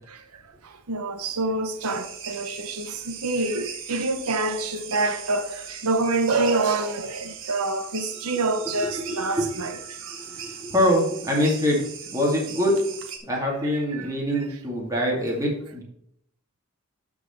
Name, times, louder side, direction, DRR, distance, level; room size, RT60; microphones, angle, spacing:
voice 1, 0.9-9.7 14.0-14.1, right 3 dB, 90° right, 0.9 m, -26 dB
sound 1, 1.8-13.2, right 7 dB, 60° right, 1.6 m, -39 dB
voice 2, 8.7-9.7 10.1-12.7 13.3-15.8, equal, 15° right, 2.4 m, -25 dB
12.5 x 4.9 x 4.5 m
head